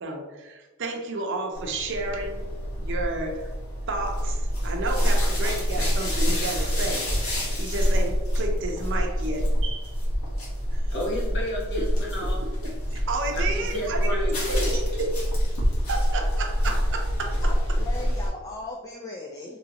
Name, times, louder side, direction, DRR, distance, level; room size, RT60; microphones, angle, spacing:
voice 1, 0.0-2.5 2.8-3.5 3.9-7.2 7.6-9.9 10.7-10.8 12.6-15.2 15.9-17.8, right 2 dB, 60° right, 2 dB, 0.6 m, -31 dB
sound 1, 1.5-18.3, equal, 85° left, 1.3 m, -26 dB
sound 2, 2.1-17.6, right 1 dB, 70° left, 0.6 m, -37 dB
voice 2, 10.9-12.5 12.9-13.0 13.3-14.9, equal, 55° left, -3 dB, 1.1 m, -32 dB
voice 3, 17.4-19.6, left 2 dB, 15° left, -1 dB, 0.3 m, -38 dB
3.8 x 3.0 x 2.9 m, 1.2 s
head